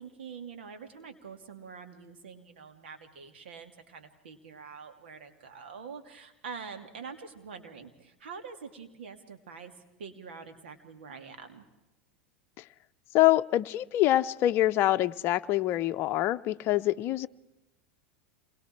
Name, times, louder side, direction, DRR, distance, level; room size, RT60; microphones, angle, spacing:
voice 1, 0.0-9.7 10.0-11.7, right 5 dB, 75° right, 6 dB, 2.6 m, -45 dB
voice 2, 13.1-17.3, left 15 dB, 45° left, 10 dB, 0.7 m, -25 dB
27.5 x 22.0 x 4.5 m, 0.98 s
hypercardioid pair, 90°, 6 cm